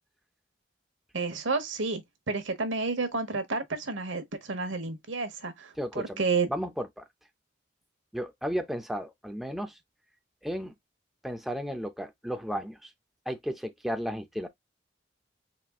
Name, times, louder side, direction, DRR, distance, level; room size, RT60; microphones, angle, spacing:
voice 1, 1.1-6.5, right 4 dB, 90° right, 1.1 m, -31 dB
voice 2, 5.8-6.2 6.5-7.1 8.1-9.8 10.4-10.7 11.2-12.9 13.3-14.5, equal, ahead, 0.5 m, -34 dB
4.2 x 3.5 x 2.3 m
head